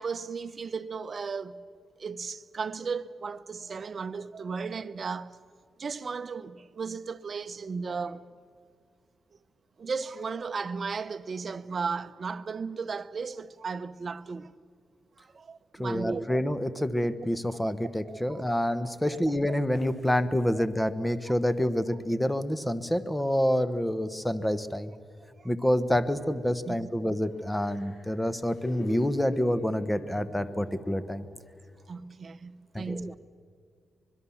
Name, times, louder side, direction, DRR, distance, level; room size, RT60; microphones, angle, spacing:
voice 1, 0.0-1.6 2.0-5.4 5.8-8.3 9.8-14.5 15.2-16.4 18.0-18.4 19.0-19.3 25.4-25.5 26.7-26.8 31.9-33.1, right 5 dB, 45° right, 0.8 m, -35 dB
voice 2, 15.8-24.9 25.4-31.3 32.7-33.1, equal, 10° left, 1.1 m, -27 dB
sound 1, 26.0-26.8 27.2-31.4 31.8-31.9, left 2 dB, 45° left, 5.2 m, -44 dB
25.0 x 21.5 x 7.2 m
cardioid pair, 105°, 0 cm